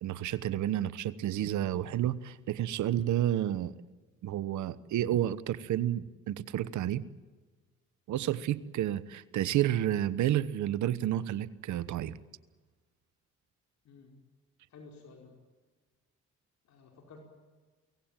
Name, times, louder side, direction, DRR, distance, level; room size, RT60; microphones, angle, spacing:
voice 1, 0.0-3.7 4.2-7.0 8.1-12.2, right 12 dB, 70° right, 16 dB, 1.1 m, -30 dB
voice 2, 13.8-14.2 14.7-15.4 16.6-17.2, left 4 dB, 65° left, 1 dB, 4.8 m, -53 dB
24.0 x 17.5 x 9.0 m, 1.4 s
supercardioid pair, 75°, 30 cm